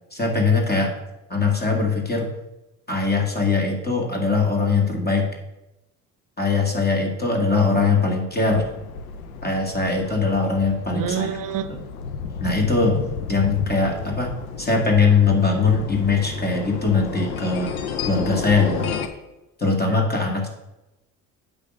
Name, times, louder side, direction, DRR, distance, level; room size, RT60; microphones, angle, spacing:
voice 1, 0.1-0.9 1.3-2.3 2.9-5.3 6.4-8.7 9.4-11.4 11.7-11.8 12.4-13.0 13.3-17.7 18.0-19.0 19.6-20.5, left 4 dB, 25° left, 1 dB, 2.1 m, -21 dB
sound 1, 8.3-19.1, left 6 dB, 90° left, 0.7 m, -32 dB
voice 2, 10.9-11.7, right 9 dB, 50° right, 13 dB, 0.8 m, -26 dB
8.2 x 4.0 x 6.3 m, 0.97 s
hypercardioid pair, 50°, 42 cm